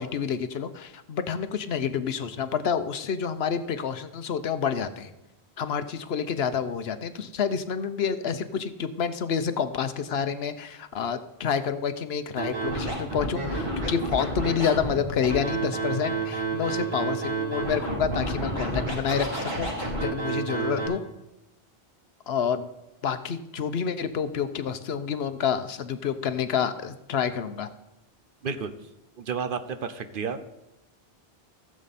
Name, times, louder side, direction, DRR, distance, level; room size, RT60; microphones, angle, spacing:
voice 1, 0.0-5.1 5.6-19.7 20.0-21.0 22.3-22.7 23.0-27.7, left 7 dB, 80° left, 10 dB, 1.0 m, -28 dB
Scratching (performance technique), 12.4-20.9, right 2 dB, 85° right, 4.3 m, -30 dB
voice 2, 29.2-30.4, right 6 dB, 60° right, 9 dB, 1.0 m, -31 dB
16.0 x 7.6 x 4.2 m, 0.93 s
omnidirectional pair, 1.0 m